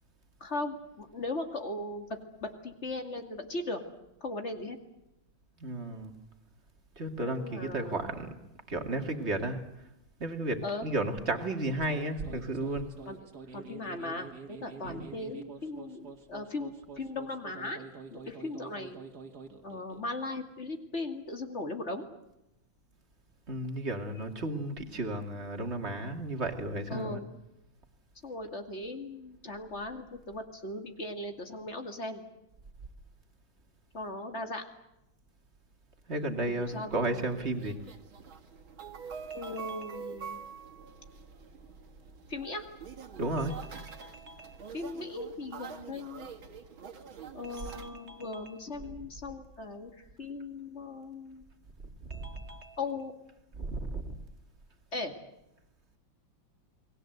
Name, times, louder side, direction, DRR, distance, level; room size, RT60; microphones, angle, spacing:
voice 1, 0.4-3.8 4.2-4.8 7.2-8.1 10.6-10.9 13.1-13.2 13.5-17.8 18.1-19.0 19.6-22.1 26.9-27.3 28.2-32.2 33.9-34.6 36.5-37.4 39.3-40.4 42.3-42.7 44.7-46.3 47.3-51.4 52.8-53.1 54.9-55.1, left 2 dB, 35° left, 5 dB, 2.6 m, -38 dB
voice 2, 5.6-6.1 7.0-8.4 8.7-9.6 10.2-12.9 14.8-15.1 23.5-27.2 36.1-37.8 39.3-39.9 43.2-44.6 47.4-48.4 52.1-52.8 53.6-54.1, right 2 dB, 35° right, 5 dB, 2.5 m, -34 dB
sound 1, 11.7-20.1, right 5 dB, 55° right, 2.5 m, -47 dB
sound 2, 36.6-47.9, right 6 dB, 85° right, 2.7 m, -46 dB
29.0 x 21.0 x 8.0 m, 0.89 s
omnidirectional pair, 2.1 m